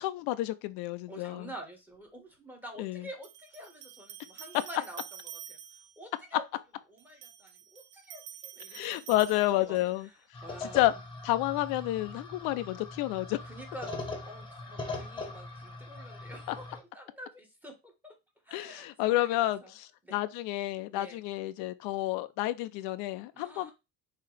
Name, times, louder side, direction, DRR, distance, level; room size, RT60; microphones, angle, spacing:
voice 1, 0.0-1.5 2.8-3.0 8.7-10.1 10.7-10.9 11.2-13.4 18.5-23.7, left 16 dB, 80° left, 0.5 m, -30 dB
voice 2, 1.1-5.6 6.0-6.4 6.9-9.2 9.5-10.2 10.4-11.0 13.4-18.2 18.4-19.8 20.0-20.2 20.9-21.2 23.3-23.7, right 1 dB, 5° right, 1.3 m, -48 dB
sound 1, 1.9-2.0 3.2-6.0 7.0-10.0, right 10 dB, 90° right, 0.6 m, -48 dB
sound 2, 10.3-16.8, left 3 dB, 15° left, 1.1 m, -41 dB
5.6 x 2.9 x 3.3 m
cardioid pair, 135°, 36 cm